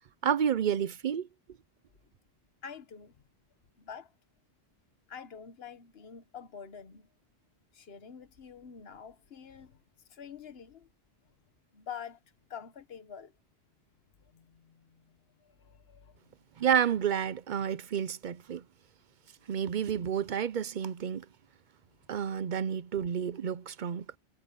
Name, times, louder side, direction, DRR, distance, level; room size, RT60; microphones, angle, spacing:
voice 1, 0.2-1.3 16.6-18.6 19.5-21.2 22.1-24.1, right 8 dB, 55° right, 0.7 m, -30 dB
voice 2, 2.6-3.1 3.8-4.1 5.1-7.1 7.7-9.8 10.1-10.9 11.7-12.2 12.5-13.3 14.3-15.0 15.6-16.2, left 7 dB, 75° left, 1.4 m, -46 dB
omnidirectional pair, 1.0 m